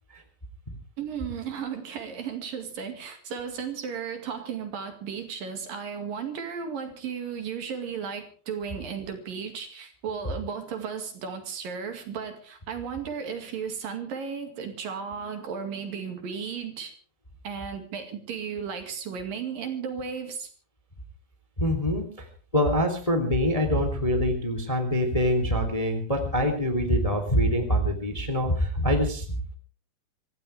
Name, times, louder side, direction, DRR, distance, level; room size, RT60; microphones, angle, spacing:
voice 1, 1.0-16.9 17.4-20.5, right 6 dB, 60° right, 6 dB, 3.8 m, -35 dB
voice 2, 21.6-22.0 22.5-29.2, equal, 10° left, 5 dB, 2.5 m, -24 dB
25.5 x 15.0 x 3.5 m, 0.41 s
omnidirectional pair, 4.7 m